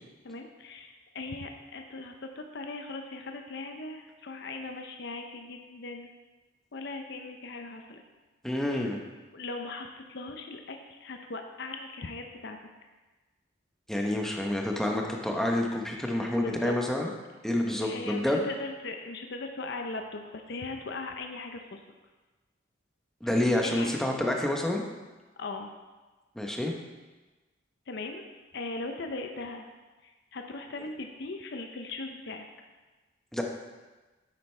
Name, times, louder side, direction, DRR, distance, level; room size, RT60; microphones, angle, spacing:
voice 1, 0.2-6.1 6.7-8.0 8.7-8.9 9.3-12.6 16.3-16.8 17.7-21.8 23.6-23.9 25.4-25.7 27.9-28.2 28.5-29.7 30.0-32.5, left 3 dB, 60° left, 4 dB, 0.6 m, -39 dB
voice 2, 8.4-9.0 13.9-17.1 17.4-18.4 23.2-24.8 26.4-26.7 33.3-33.4, left 1 dB, ahead, 0 dB, 0.8 m, -28 dB
9.0 x 7.8 x 3.3 m, 1.2 s
head